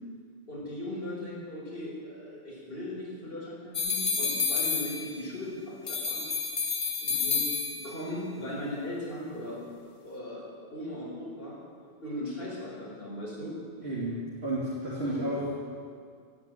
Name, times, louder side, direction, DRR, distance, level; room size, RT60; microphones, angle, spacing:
voice 1, 0.5-6.2 7.0-9.6 10.0-11.6 12.0-13.5 15.0-15.2, left 1 dB, 55° left, -7 dB, 5.0 m, -38 dB
sound 1, 3.7-5.4 5.9-8.1, left 5 dB, 70° left, 2.0 m, -30 dB
voice 2, 13.8-15.5, right 1 dB, 60° right, -7 dB, 2.7 m, -32 dB
15.5 x 9.7 x 9.0 m, 2.1 s
omnidirectional pair, 1.2 m